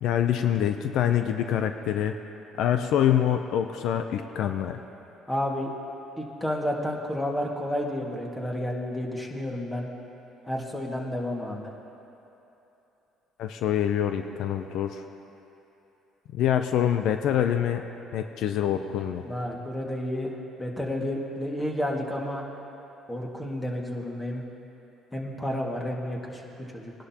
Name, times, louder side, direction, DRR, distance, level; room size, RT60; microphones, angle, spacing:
voice 1, 0.0-2.1 2.6-4.8 13.4-15.0 16.3-17.8 18.1-19.2, left 10 dB, 70° left, 7 dB, 0.5 m, -25 dB
voice 2, 5.3-5.7 6.2-9.9 10.5-11.7 19.3-22.5 23.1-24.4 25.1-26.9, left 1 dB, 15° left, -1 dB, 1.9 m, -31 dB
19.5 x 11.5 x 2.9 m, 3.0 s
supercardioid pair, 80°, 0 cm